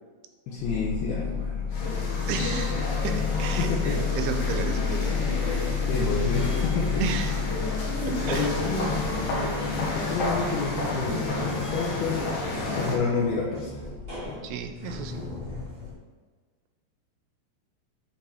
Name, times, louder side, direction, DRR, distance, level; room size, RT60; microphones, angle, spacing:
voice 1, 0.5-2.1 3.6-4.0 5.8-7.0 8.3-9.0 9.9-12.3 12.6-13.8 14.3-14.4, left 4 dB, 75° left, -4 dB, 2.7 m, -29 dB
sound 1, 0.6-15.9, left 5 dB, 60° right, 0.6 m, -31 dB
sound 2, 1.7-13.0, left 2 dB, 60° left, 2.7 m, -31 dB
voice 2, 2.2-5.3 7.0-7.4 8.1-8.5 14.4-15.3, right 7 dB, 80° right, 7 dB, 2.5 m, -33 dB
8.8 x 5.3 x 3.5 m, 1.5 s
omnidirectional pair, 4.8 m